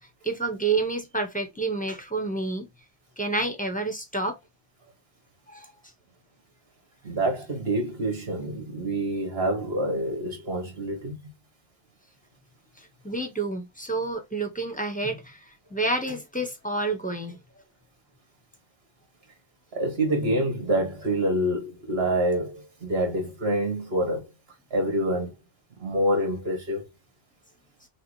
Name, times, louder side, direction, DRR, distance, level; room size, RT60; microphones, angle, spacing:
voice 1, 0.2-2.7 3.2-4.4 5.5-5.7 13.0-15.4 15.7-17.4, right 3 dB, 10° left, 1.0 m, -29 dB
voice 2, 7.0-11.2 19.7-24.3 24.7-25.3 25.8-26.9, right 1 dB, 60° right, 1.9 m, -26 dB
6.5 x 2.4 x 3.1 m
omnidirectional pair, 1.2 m